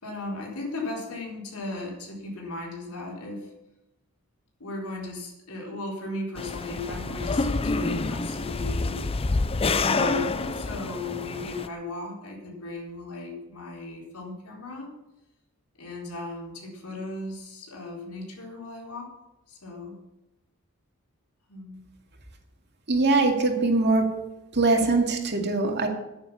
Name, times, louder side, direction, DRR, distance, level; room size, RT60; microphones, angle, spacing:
voice 1, 0.0-3.5 4.6-9.0 9.8-14.9 15.8-19.1 19.5-20.0 21.5-21.8, left 2 dB, 80° left, -2 dB, 4.2 m, -36 dB
sound 1, 6.4-11.7, left 3 dB, 25° left, 0.5 m, -27 dB
voice 2, 22.9-24.1 24.5-25.9, right 3 dB, 50° right, 3 dB, 2.3 m, -22 dB
10.0 x 10.0 x 7.3 m, 0.95 s
head